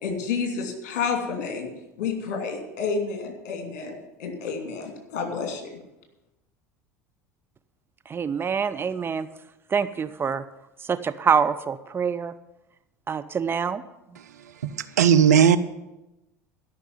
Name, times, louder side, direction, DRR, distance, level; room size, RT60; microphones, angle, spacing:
voice 1, 0.0-1.7 2.0-5.7, left 5 dB, 60° left, 3 dB, 2.8 m, -30 dB
voice 2, 8.1-9.3 9.7-10.4 10.8-12.3 13.1-13.8, right 6 dB, 25° right, 10 dB, 0.6 m, -25 dB
voice 3, 14.2-15.6, right 8 dB, 75° right, 10 dB, 0.6 m, -19 dB
12.5 x 5.9 x 9.4 m, 0.96 s
figure-of-eight pair, 70°, 9 cm